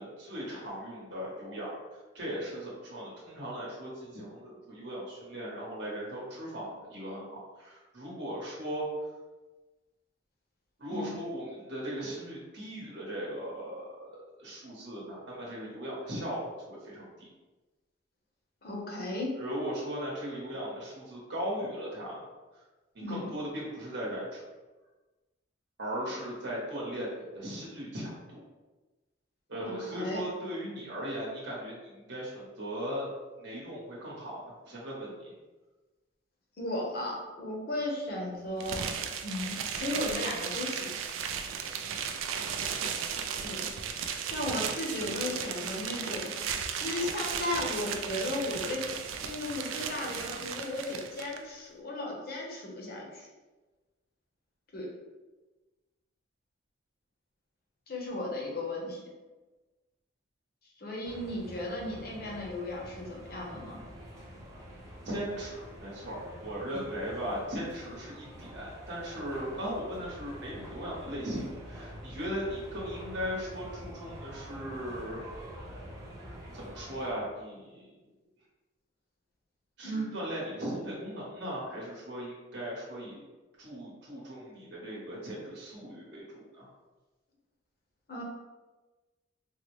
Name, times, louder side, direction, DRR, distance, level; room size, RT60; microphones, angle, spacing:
voice 1, 0.0-1.7 2.1-8.9 10.8-17.3 19.4-22.2 23.1-24.4 25.8-28.4 29.5-33.1 33.4-35.3 65.0-75.3 76.5-77.9 79.8-83.2 83.6-86.7, equal, 55° right, -5 dB, 1.0 m, -38 dB
voice 2, 18.6-19.4 23.0-23.3 29.6-30.2 36.6-38.8 39.2-41.0 43.4-43.7 44.3-46.3 46.8-53.3 54.7-54.9 57.9-59.0 60.8-63.8 79.8-80.1 88.1-88.2, left 1 dB, 50° left, -1 dB, 0.7 m, -35 dB
sound 1, 38.6-51.4, right 7 dB, 80° right, 0.3 m, -35 dB
sound 2, 61.0-77.1, equal, 15° right, 0.6 m, -46 dB
3.9 x 2.0 x 3.0 m, 1.2 s
head